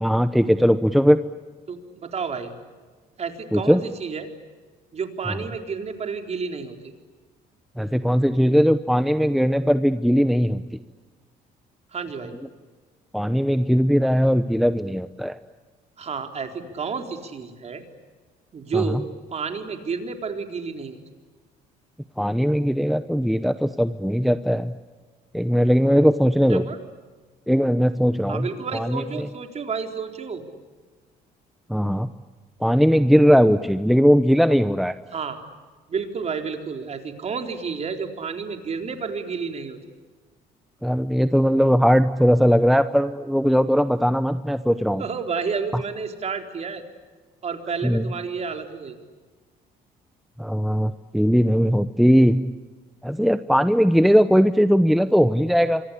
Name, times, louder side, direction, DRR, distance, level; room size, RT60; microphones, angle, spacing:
voice 1, 0.0-1.2 3.5-3.8 7.8-10.6 13.1-15.4 18.7-18.8 22.2-24.7 25.3-26.6 27.5-28.5 28.7-29.0 31.7-32.1 32.6-34.9 40.8-45.0 47.8-48.0 50.4-52.5 53.0-55.8, equal, ahead, 11 dB, 0.9 m, -19 dB
voice 2, 1.7-2.5 3.2-4.3 4.9-6.9 11.9-12.3 16.0-17.8 18.5-19.0 19.3-21.0 26.5-26.8 28.3-30.4 35.1-35.4 35.9-39.8 45.0-46.8 47.4-49.0, right 5 dB, 40° right, 5 dB, 4.0 m, -30 dB
27.5 x 24.5 x 8.5 m, 1.4 s
cardioid pair, 110°, 17 cm